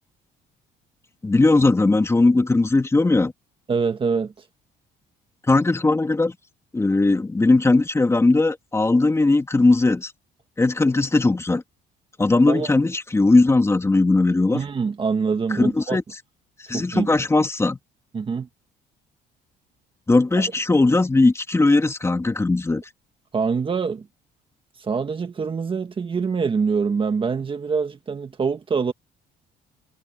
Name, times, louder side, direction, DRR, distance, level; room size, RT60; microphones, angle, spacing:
voice 1, 1.2-3.3 5.5-6.3 6.7-10.1 10.6-11.6 12.2-14.6 15.5-16.0 16.7-17.8 20.1-22.8, left 2 dB, 15° left, 2.8 m, -19 dB
voice 2, 3.7-4.3 12.5-12.7 14.5-16.0 16.7-17.2 18.1-18.5 20.4-20.5 23.3-24.1 24.8-28.9, right 5 dB, 30° right, 1.6 m, -24 dB
cardioid pair, 110°, 17 cm